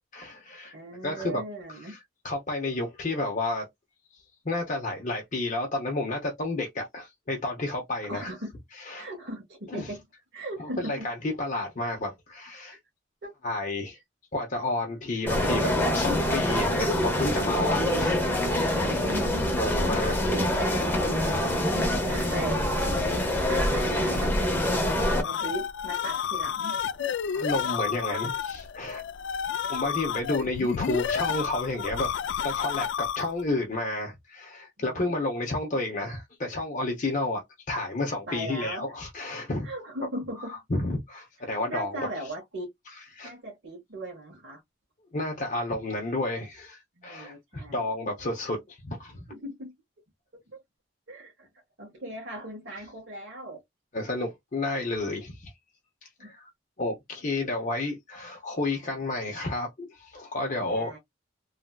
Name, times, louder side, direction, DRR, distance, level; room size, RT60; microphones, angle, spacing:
voice 1, 0.1-0.7 1.0-1.4 1.9-2.0 2.2-3.7 4.1-8.3 8.8-9.1 9.7-9.9 10.6-12.8 13.4-14.0 14.3-18.7 19.6-21.4 27.3-29.0 29.7-32.1 32.4-39.7 40.5-42.3 43.1-43.3 45.1-49.2 53.9-55.5 56.0-56.5 56.8-61.0, left 2 dB, 45° left, 0.7 m, -31 dB
voice 2, 0.7-2.0 8.0-8.5 9.0-10.0 10.3-11.1 13.2-13.3 18.7-19.4 21.2-22.6 23.4-24.9 25.2-27.1 34.8-35.1 38.3-38.8 39.6-40.6 41.7-42.7 43.2-44.6 47.0-47.9 49.3-49.7 50.5-50.6 51.1-51.5 51.8-53.6 56.2-56.3 60.6-61.0, right 1 dB, 65° right, 1.5 m, -38 dB
sound 1, 15.3-25.2, left 1 dB, 10° left, 0.8 m, -25 dB
sound 2, 25.2-33.5, left 8 dB, 65° left, 0.3 m, -31 dB
3.2 x 2.6 x 2.2 m
head